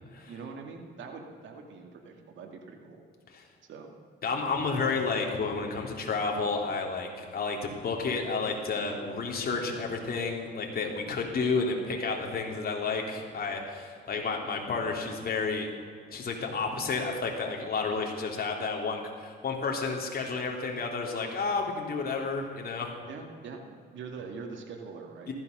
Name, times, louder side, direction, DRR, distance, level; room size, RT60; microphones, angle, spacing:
voice 1, 0.2-3.0 3.6-3.9 23.0-25.3, right 5 dB, 70° right, 2 dB, 2.3 m, -43 dB
voice 2, 4.2-15.7 16.1-22.9 25.3-25.4, left 4 dB, 50° left, 1 dB, 3.4 m, -31 dB
15.0 x 13.5 x 6.8 m, 2.2 s
cardioid pair, 90°, 20 cm